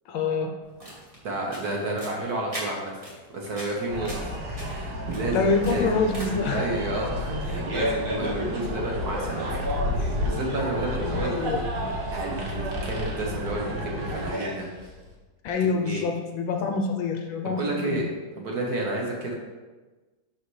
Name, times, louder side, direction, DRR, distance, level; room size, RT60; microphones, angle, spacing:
voice 1, 0.1-0.5 5.3-6.7 11.0-11.9 15.4-18.0, left 4 dB, 70° left, 4 dB, 1.3 m, -26 dB
sound 1, 0.6-6.6, equal, 15° right, 1.9 m, -42 dB
voice 2, 1.2-3.0 3.3-5.9 6.5-11.7 12.1-14.7 15.6-16.0 17.4-18.1 18.3-19.3, right 2 dB, 50° right, -2 dB, 1.4 m, -31 dB
sound 2, 3.9-14.3, equal, 80° right, 2.1 m, -31 dB
Fart, 7.2-15.1, equal, 35° right, 1.0 m, -34 dB
11.5 x 4.2 x 3.2 m, 1.3 s
omnidirectional pair, 2.4 m